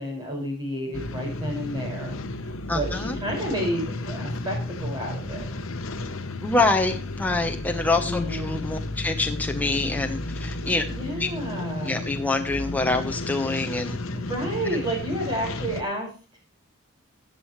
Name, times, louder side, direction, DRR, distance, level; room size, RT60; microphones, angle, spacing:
voice 1, 0.0-2.2 2.7-5.5 8.0-8.7 10.9-12.1 14.1-16.1, equal, 20° right, -1 dB, 5.7 m, -30 dB
sound 1, 0.9-15.8, left 2 dB, 70° left, 1.0 m, -33 dB
voice 2, 2.7-3.1 6.4-10.8 11.2-11.3 11.8-14.0, left 2 dB, 10° left, 3 dB, 1.0 m, -26 dB
14.5 x 7.6 x 3.2 m, 0.36 s
head